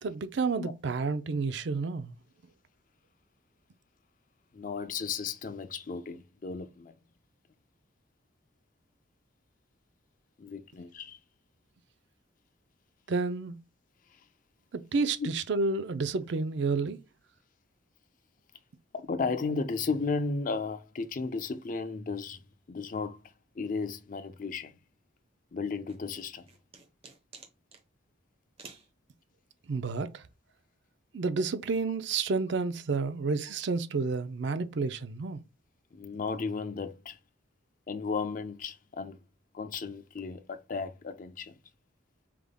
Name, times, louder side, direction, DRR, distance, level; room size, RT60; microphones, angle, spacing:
voice 1, 0.0-2.1 13.1-13.6 14.7-17.0 29.7-30.2 31.1-35.4, right 4 dB, 60° right, 0.4 m, -30 dB
voice 2, 4.5-6.9 10.4-11.2 14.1-14.2 15.2-15.3 18.9-22.4 22.7-23.2 23.6-24.8 25.5-26.5 35.9-37.2 37.9-39.2 39.5-41.6, left 4 dB, 45° left, 0.5 m, -34 dB
sound 1, 25.9-27.8 28.6-28.9, right 4 dB, 30° right, 0.9 m, -51 dB
4.8 x 3.5 x 2.2 m
head